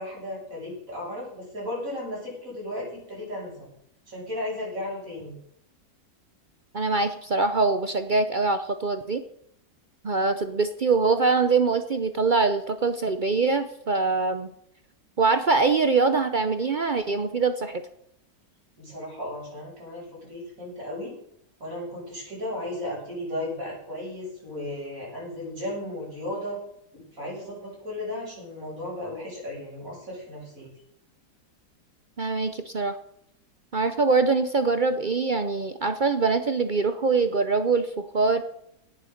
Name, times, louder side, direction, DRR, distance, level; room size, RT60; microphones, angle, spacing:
voice 1, 0.0-3.7 4.1-5.3 18.8-21.1 21.6-26.6 26.9-30.7, left 1 dB, 45° right, -5 dB, 7.8 m, -35 dB
voice 2, 6.7-9.2 10.0-14.5 15.2-17.8 32.2-33.0 33.7-38.4, right 4 dB, 70° right, 9 dB, 0.4 m, -23 dB
17.5 x 7.5 x 6.5 m, 0.75 s
omnidirectional pair, 2.0 m